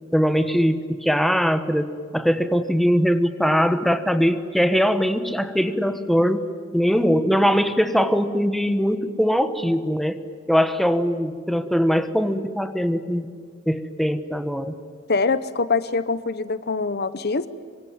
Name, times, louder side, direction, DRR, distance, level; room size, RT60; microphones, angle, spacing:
voice 1, 0.1-6.5 6.7-10.2 10.5-13.3 13.7-14.7, equal, ahead, 9 dB, 1.2 m, -21 dB
voice 2, 15.1-17.5, left 4 dB, 50° left, 14 dB, 0.9 m, -24 dB
26.5 x 24.0 x 9.4 m, 2.1 s
head